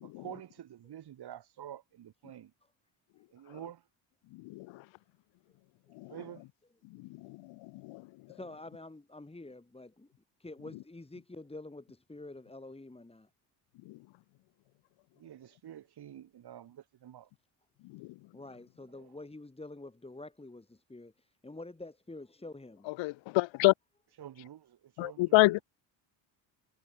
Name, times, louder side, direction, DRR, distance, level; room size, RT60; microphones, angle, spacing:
voice 1, 0.0-2.5 3.3-3.9 6.1-6.5 15.2-17.3 18.9-19.1 24.1-25.6, right 11 dB, 55° right, 3.6 m, -48 dB
voice 2, 8.3-10.1 10.4-13.3 18.3-22.9, left 2 dB, 10° left, 5.0 m, -47 dB
voice 3, 23.0-23.7 25.0-25.6, left 21 dB, 75° left, 0.7 m, -25 dB
cardioid pair, 95°, 46 cm